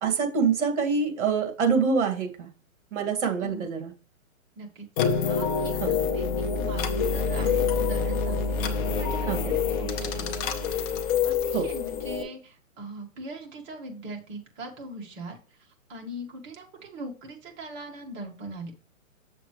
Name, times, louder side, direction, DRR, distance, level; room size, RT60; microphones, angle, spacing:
voice 1, 0.0-2.5 2.9-3.9 5.8-5.9 9.2-9.5 11.5-11.7, right 5 dB, 55° right, 4 dB, 2.1 m, -25 dB
voice 2, 4.6-15.4 15.9-18.7, right 1 dB, 25° right, 1 dB, 1.9 m, -41 dB
sound 1, 5.0-12.2, left 5 dB, 15° left, 0.5 m, -26 dB
7.2 x 7.0 x 3.1 m, 0.37 s
hypercardioid pair, 140°, 42 cm